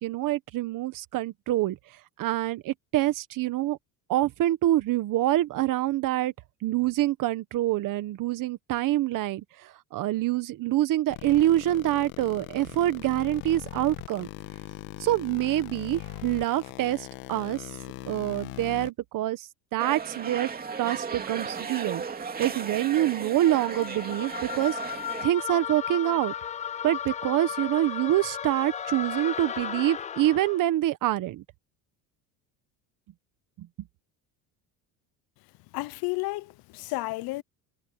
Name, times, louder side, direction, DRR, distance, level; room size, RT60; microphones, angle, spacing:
voice 1, 0.0-1.8 2.2-3.8 4.1-6.3 6.6-9.4 9.9-14.3 15.0-17.6 18.0-20.5 20.8-22.0 22.4-24.8 25.2-26.3 26.8-31.4 33.6-33.7, right 14 dB, 50° right, 1.5 m, -26 dB
sound 1, 11.1-18.9, left 21 dB, 90° left, 1.6 m, -40 dB
sound 2, 19.8-25.3, right 5 dB, 20° right, 2.7 m, -35 dB
sound 3, 23.4-30.7, left 8 dB, 20° left, 0.4 m, -35 dB
voice 2, 35.7-37.4, left 21 dB, 60° left, 0.8 m, -32 dB
cardioid pair, 135°, 41 cm